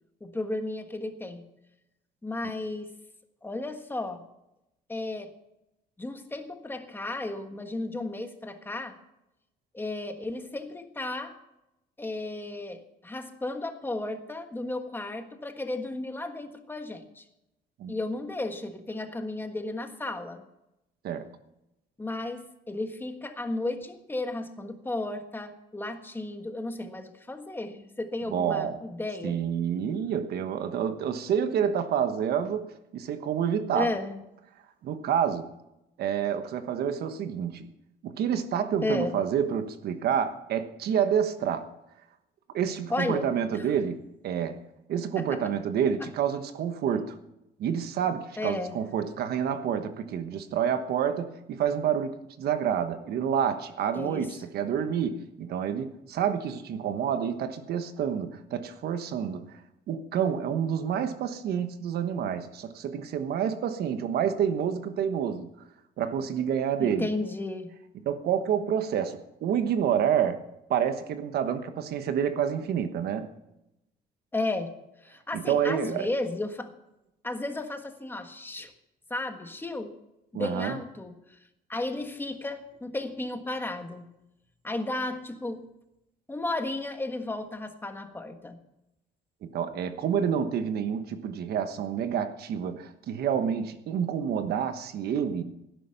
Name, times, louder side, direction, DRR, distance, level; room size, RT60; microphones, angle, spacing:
voice 1, 0.2-1.4 2.2-2.9 3.4-4.2 4.9-5.3 6.0-9.0 9.7-11.3 12.0-17.2 17.9-20.4 22.0-29.4 33.7-34.2 38.8-39.2 42.9-43.3 43.5-43.7 45.1-45.5 46.0-46.1 48.4-48.8 53.9-54.3 66.8-67.7 74.3-74.7 75.0-76.7 77.2-78.7 79.1-79.9 80.3-81.4 81.7-84.1 84.6-85.6 86.3-88.6, left 2 dB, 10° left, 1.5 m, -34 dB
voice 2, 28.3-28.8 29.2-33.9 34.8-35.5 36.0-37.7 38.0-41.7 42.5-44.6 44.9-47.2 47.6-59.6 59.9-65.5 66.0-67.1 68.0-70.4 70.7-73.3 75.3-76.1 80.3-80.8 89.4-95.4, right 8 dB, 65° right, 1.2 m, -28 dB
17.5 x 10.5 x 5.8 m
cardioid pair, 130°, 17 cm